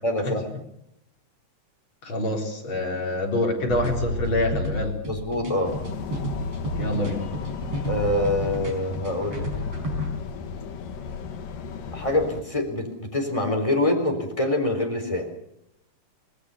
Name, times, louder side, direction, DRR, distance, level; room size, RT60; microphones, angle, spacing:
voice 1, 0.0-0.4 5.0-5.7 7.9-9.5 11.9-15.3, left 1 dB, 10° left, 3 dB, 3.7 m, -25 dB
voice 2, 2.0-5.0 6.8-7.3, left 1 dB, 35° left, 0 dB, 4.9 m, -26 dB
sound 1, 3.7-10.1, equal, 45° right, 5.6 m, -31 dB
sound 2, 5.6-12.4, left 5 dB, 90° left, 3.4 m, -35 dB
26.0 x 19.0 x 6.9 m, 0.80 s
omnidirectional pair, 3.8 m